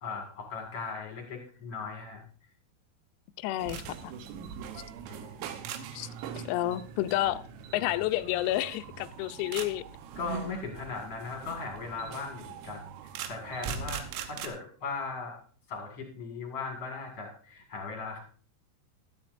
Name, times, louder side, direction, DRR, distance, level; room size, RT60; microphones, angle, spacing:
voice 1, 0.0-2.2 5.1-5.4 10.2-12.9 13.3-15.4 15.7-18.2, left 4 dB, 55° left, 1.7 m, -38 dB
voice 2, 3.4-4.1 5.9-6.1 6.5-7.4 7.7-9.8, left 15 dB, 90° left, 3.4 m, -30 dB
sound 1, 3.6-14.5, right 7 dB, 80° right, 3.5 m, -41 dB
16.0 x 12.0 x 2.6 m
omnidirectional pair, 5.9 m